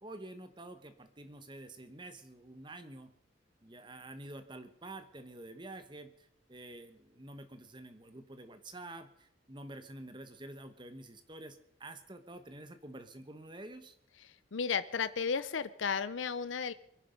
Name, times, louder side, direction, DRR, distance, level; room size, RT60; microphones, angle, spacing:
voice 1, 0.0-3.1 3.6-14.0, right 2 dB, 25° right, 9 dB, 1.2 m, -48 dB
voice 2, 14.5-16.7, left 6 dB, 90° left, 14 dB, 0.6 m, -33 dB
23.5 x 11.0 x 5.3 m, 0.70 s
head